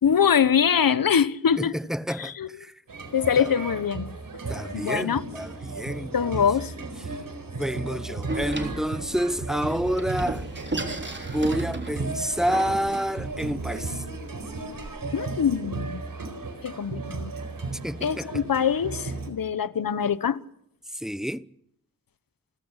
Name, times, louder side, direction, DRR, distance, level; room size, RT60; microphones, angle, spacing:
voice 1, 0.0-1.8 2.2-2.5 3.1-4.2 4.7-5.2 6.1-6.7 15.1-16.0 16.6-17.3 18.0-20.4, left 7 dB, 80° left, 1.1 m, -23 dB
voice 2, 1.6-2.7 3.4-3.5 4.5-6.5 7.5-10.4 11.3-14.0 17.8-18.3 20.9-21.5, equal, ahead, 0.9 m, -29 dB
sound 1, 2.9-19.3, right 3 dB, 75° right, 4.3 m, -35 dB
Door, 8.3-14.9, right 2 dB, 30° right, 3.6 m, -35 dB
28.5 x 14.5 x 8.2 m
wide cardioid pair, 75°, 34 cm